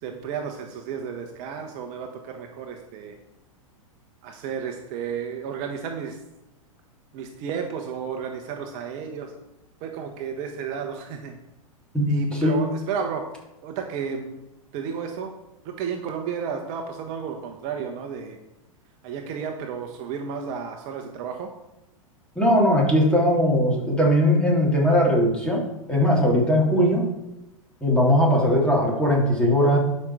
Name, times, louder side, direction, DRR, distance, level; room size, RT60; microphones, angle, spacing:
voice 1, 0.0-3.2 4.2-6.2 7.1-9.3 9.8-11.4 12.1-13.2 13.6-14.4 14.7-15.3 15.6-18.4 19.0-21.5, right 6 dB, 45° right, 4 dB, 1.1 m, -32 dB
voice 2, 11.9-12.6 22.3-25.6 25.9-27.1 27.8-29.8, equal, 5° left, -3 dB, 3.2 m, -19 dB
12.0 x 5.5 x 4.8 m, 0.95 s
hypercardioid pair, 100°, 18 cm